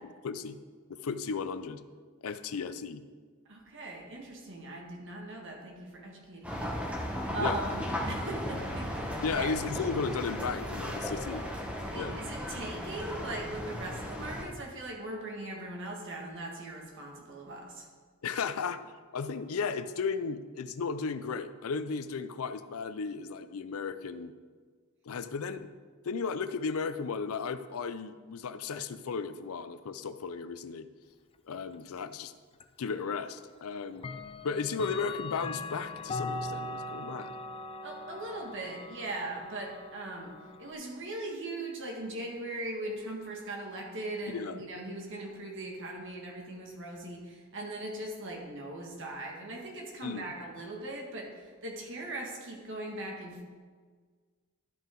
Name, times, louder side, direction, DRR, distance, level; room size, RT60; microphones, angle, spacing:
voice 1, 0.2-0.6 0.9-1.8 2.2-3.0 7.4-7.6 9.2-11.4 11.9-12.2 18.2-18.8 19.1-24.3 25.0-25.7 26.0-30.9 31.5-32.3 32.8-34.1 34.4-37.3 44.3-44.6 50.0-50.3, left 5 dB, 80° left, 12 dB, 0.5 m, -35 dB
voice 2, 3.5-6.7 7.3-9.5 11.9-17.9 37.8-40.3 40.6-53.4, right 2 dB, 60° right, 0 dB, 1.8 m, -40 dB
sound 1, 6.4-14.4, equal, 5° right, 1.2 m, -35 dB
Clock, 32.6-32.7 34.0-40.7, left 2 dB, 25° left, 0.4 m, -40 dB
12.0 x 5.4 x 3.8 m, 1.5 s
head